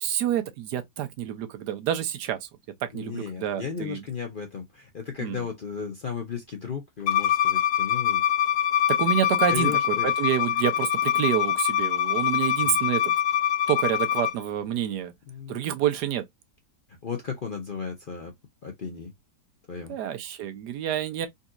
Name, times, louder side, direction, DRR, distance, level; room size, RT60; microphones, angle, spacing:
voice 1, 0.0-2.5 2.8-4.0 5.2-5.4 8.9-13.1 13.7-15.1 15.5-16.2 19.9-21.3, right 11 dB, 75° right, 1.2 m, -28 dB
voice 2, 2.9-8.2 9.5-10.1 12.6-12.8 15.3-15.6 17.0-18.3 18.6-19.1 19.7-20.0, left 6 dB, 55° left, 0.6 m, -35 dB
Bowed string instrument, 7.1-14.3, left 10 dB, 70° left, 1.1 m, -24 dB
3.9 x 2.7 x 2.3 m
omnidirectional pair, 1.8 m